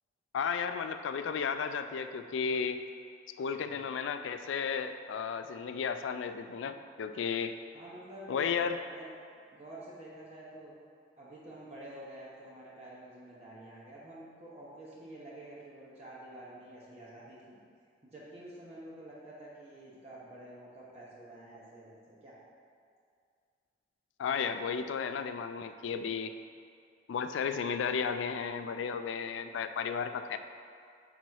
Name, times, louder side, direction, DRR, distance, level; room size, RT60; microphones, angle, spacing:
voice 1, 0.3-2.8 3.4-7.6 8.3-8.8 24.2-26.3 27.1-30.4, left 6 dB, 85° left, 9 dB, 0.3 m, -33 dB
voice 2, 7.7-9.1 9.5-10.7 11.2-17.6 18.1-22.4, right 1 dB, 35° right, -7 dB, 1.0 m, -49 dB
6.1 x 4.0 x 4.6 m, 2.3 s
head